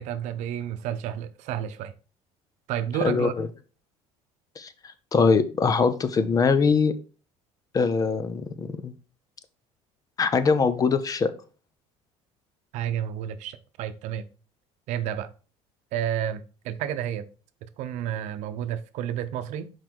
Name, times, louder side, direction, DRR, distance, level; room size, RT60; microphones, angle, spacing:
voice 1, 0.0-1.9 2.7-3.3 12.7-14.2 14.9-15.3 15.9-17.3 17.8-19.7, right 10 dB, 70° right, 0.8 m, -31 dB
voice 2, 3.0-3.5 4.6-6.9 7.7-8.9 10.2-11.3, left 5 dB, 30° left, 0.8 m, -22 dB
5.9 x 4.8 x 4.6 m
cardioid pair, 110°, 12 cm